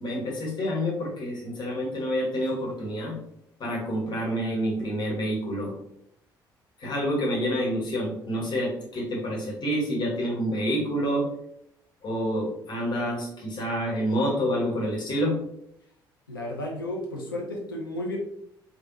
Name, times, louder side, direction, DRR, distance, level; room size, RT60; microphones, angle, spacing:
voice 1, 0.0-3.2 3.6-5.7 6.8-11.3 12.0-15.4, equal, 40° left, -2 dB, 1.1 m, -28 dB
voice 2, 16.3-18.2, left 1 dB, 85° left, -1 dB, 0.4 m, -33 dB
3.4 x 2.0 x 2.5 m, 0.73 s
figure-of-eight pair, 50°, 11 cm